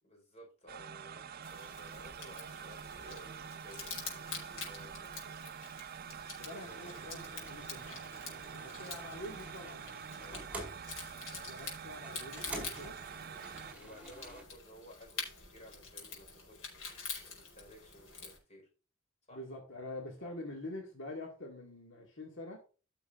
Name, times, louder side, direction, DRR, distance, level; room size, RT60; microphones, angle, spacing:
voice 1, 0.0-5.5 6.3-7.7 8.2-8.7 10.2-10.5 13.7-18.7 19.3-19.4, left 1 dB, 30° left, 0 dB, 4.8 m, -56 dB
sound 1, 0.7-13.7, right 7 dB, 50° right, 0.5 m, -47 dB
sound 2, 1.4-18.4, left 4 dB, 85° left, 5.2 m, -47 dB
voice 2, 6.4-8.0 8.5-9.9 11.3-13.0 19.3-22.6, left 1 dB, 65° left, 0 dB, 2.1 m, -46 dB
sound 3, 6.5-14.4, right 1 dB, 5° right, 5.0 m, -49 dB
15.5 x 6.9 x 2.6 m, 0.34 s
head